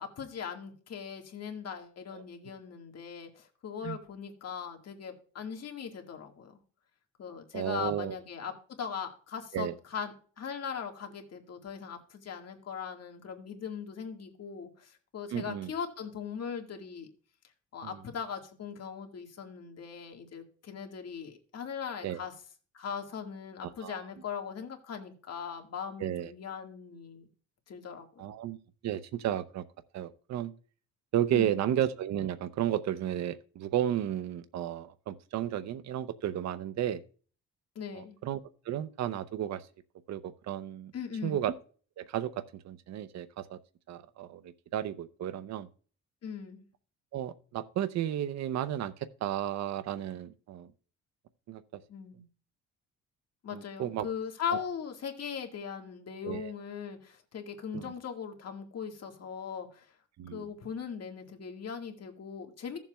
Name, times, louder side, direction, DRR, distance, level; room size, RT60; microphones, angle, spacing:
voice 1, 0.0-6.6 7.2-17.1 17.7-22.3 22.7-27.3 27.7-28.1 31.3-31.6 37.8-38.2 40.9-41.4 46.2-46.7 51.9-52.3 53.4-59.9 60.3-62.8, left 7 dB, 55° left, 1.7 m, -39 dB
voice 2, 7.5-8.1 9.5-9.7 15.3-15.7 17.8-17.9 22.0-22.2 23.8-24.0 26.0-26.3 28.2-28.6 28.8-29.6 29.9-30.5 31.1-37.0 37.9-38.4 38.7-39.6 40.1-40.9 41.2-41.5 42.0-43.6 43.9-45.7 47.1-48.9 49.2-50.7 51.5-51.8 53.5-54.1 54.5-54.6 56.2-56.5 57.7-57.9 60.2-60.5, right 11 dB, 65° right, 0.6 m, -33 dB
16.0 x 7.2 x 2.2 m
cardioid pair, 90°, 30 cm